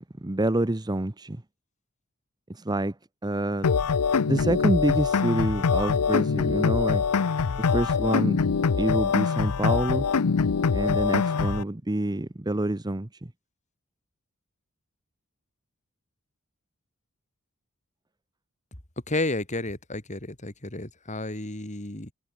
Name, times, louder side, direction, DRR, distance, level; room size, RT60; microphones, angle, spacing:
voice 1, 0.0-1.4 2.7-2.9 3.2-3.7 4.3-7.0 7.7-8.4 8.8-10.1 10.7-13.1, right 1 dB, 20° right, 0.9 m, -27 dB
sound 1, 3.6-11.6, left 5 dB, 80° left, 0.6 m, -24 dB
voice 2, 19.1-22.1, left 2 dB, 35° left, 3.5 m, -31 dB
head